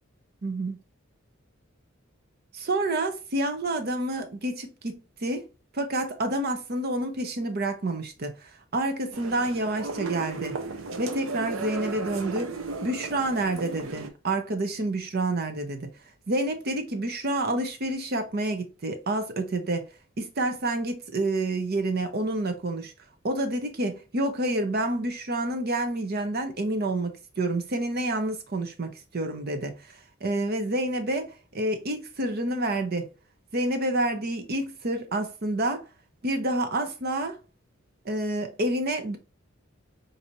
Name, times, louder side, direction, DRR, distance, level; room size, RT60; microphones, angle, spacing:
voice 1, 0.4-0.8 2.5-5.4 5.7-8.4 8.7-10.6 11.0-12.5 12.8-15.9 16.3-19.8 20.2-22.9 23.2-29.7 30.2-33.1 33.5-35.8 36.2-37.4 38.0-39.2, right 1 dB, 50° right, 0.7 m, -28 dB
sound 1, 9.1-14.1, right 4 dB, 85° right, 0.6 m, -35 dB
3.9 x 2.7 x 3.0 m
head